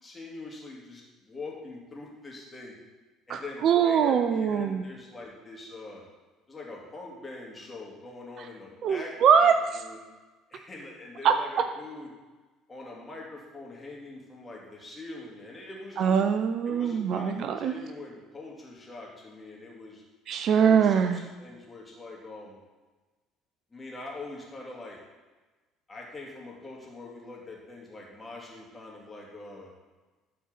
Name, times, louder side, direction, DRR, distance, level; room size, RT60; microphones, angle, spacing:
voice 1, 0.0-2.7 3.3-6.0 6.5-10.0 10.5-12.1 12.7-16.2 16.6-20.0 20.6-22.6 23.7-25.0 25.9-29.7, left 2 dB, 20° left, -3 dB, 2.5 m, -43 dB
voice 2, 3.3-4.8 8.8-9.5 11.2-11.3 16.0-17.7 20.3-21.2, right 7 dB, 50° right, 9 dB, 0.4 m, -22 dB
12.0 x 4.4 x 4.1 m, 1.2 s
figure-of-eight pair, 55°, 0 cm